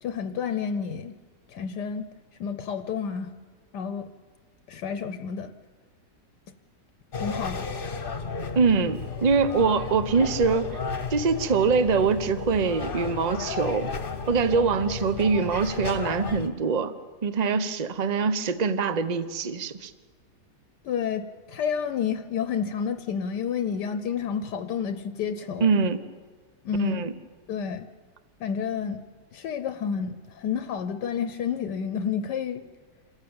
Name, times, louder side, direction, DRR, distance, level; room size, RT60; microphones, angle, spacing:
voice 1, 0.0-1.1 1.5-2.1 2.4-3.3 3.7-4.1 4.7-5.5 7.1-8.1 20.8-25.7 26.6-27.0 27.5-27.9 28.4-29.0 29.3-32.6, left 7 dB, 75° left, 10 dB, 1.4 m, -30 dB
sound 1, 7.1-16.5, left 5 dB, 35° left, 1.3 m, -33 dB
voice 2, 8.5-10.8 11.1-13.9 14.3-16.9 17.2-19.9 25.6-26.0 26.8-27.1, right 5 dB, 35° right, 12 dB, 0.7 m, -24 dB
27.0 x 14.0 x 8.8 m, 1.5 s
omnidirectional pair, 1.9 m